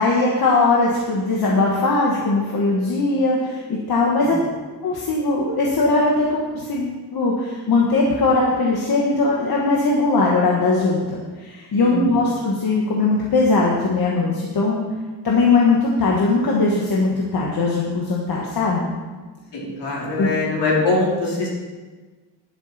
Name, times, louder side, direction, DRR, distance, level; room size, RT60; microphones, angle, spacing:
voice 1, 0.0-4.4 4.8-14.8 15.2-18.9 20.2-20.3, left 3 dB, 60° left, -3 dB, 1.6 m, -20 dB
voice 2, 11.8-12.2 19.5-21.5, left 3 dB, 80° left, -5 dB, 4.1 m, -23 dB
11.0 x 11.0 x 4.3 m, 1.3 s
wide cardioid pair, 175°, 42 cm